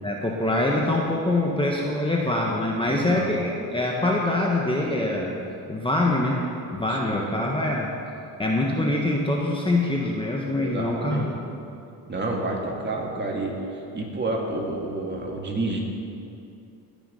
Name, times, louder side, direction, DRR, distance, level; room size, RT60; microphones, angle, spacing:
voice 1, 0.0-5.4 5.7-7.9 8.4-11.4, left 2 dB, 15° left, -2 dB, 1.4 m, -24 dB
voice 2, 2.9-3.3 6.9-7.4 10.6-11.3 12.1-13.5 13.9-15.8, right 2 dB, 25° right, -1 dB, 2.6 m, -29 dB
20.5 x 7.0 x 5.7 m, 2.6 s
cardioid pair, 100°, 38 cm